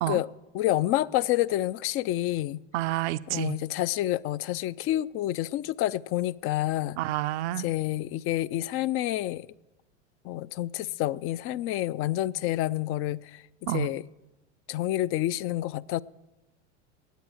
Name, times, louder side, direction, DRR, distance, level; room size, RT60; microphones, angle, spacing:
voice 1, 0.5-2.6 3.3-7.0 7.6-9.5 10.2-13.4 13.7-14.0 14.7-16.0, left 14 dB, 40° left, 0.4 m, -28 dB
voice 2, 2.7-3.6 7.0-7.7 13.7-13.9, right 16 dB, 70° right, 0.5 m, -29 dB
18.5 x 8.2 x 6.4 m
hypercardioid pair, 95°, 35 cm